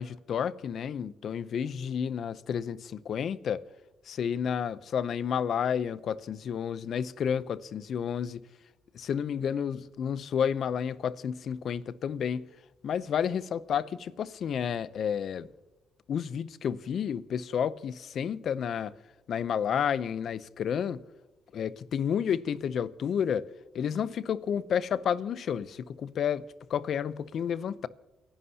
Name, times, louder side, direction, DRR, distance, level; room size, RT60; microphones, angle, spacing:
voice 1, 0.0-3.6 4.0-8.4 8.9-12.5 12.8-15.5 16.1-18.9 19.3-21.0 21.5-23.5 23.7-27.9, left 8 dB, 60° left, 0.6 m, -31 dB
29.0 x 11.0 x 2.8 m
cardioid pair, 90°, 0 cm